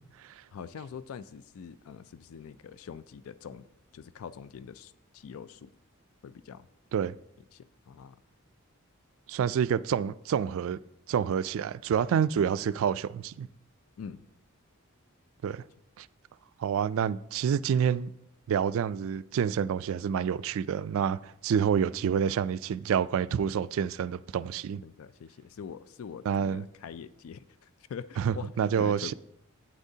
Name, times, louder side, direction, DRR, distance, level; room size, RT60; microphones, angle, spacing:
voice 1, 0.5-3.6 3.9-5.7 6.2-6.7 7.5-8.2 14.0-14.2 15.5-15.6 24.8-29.1, left 7 dB, 70° left, 0.4 m, -44 dB
voice 2, 9.3-10.8 11.1-13.5 15.4-15.6 16.0-16.1 16.6-18.1 18.5-24.8 26.3-26.6 28.2-29.1, right 7 dB, 65° right, 0.3 m, -28 dB
11.5 x 8.9 x 2.8 m
head